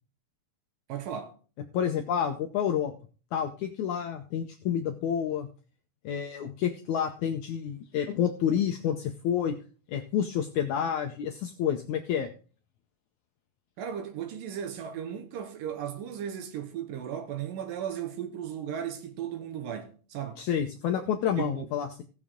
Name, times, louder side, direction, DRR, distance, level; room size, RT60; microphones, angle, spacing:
voice 1, 0.9-1.3 13.8-20.4 21.4-21.7, right 9 dB, 70° right, 2.7 m, -36 dB
voice 2, 1.7-2.9 3.3-5.5 6.1-9.6 9.9-12.3 20.4-22.0, left 8 dB, 80° left, 1.7 m, -29 dB
17.5 x 7.1 x 3.6 m
omnidirectional pair, 4.3 m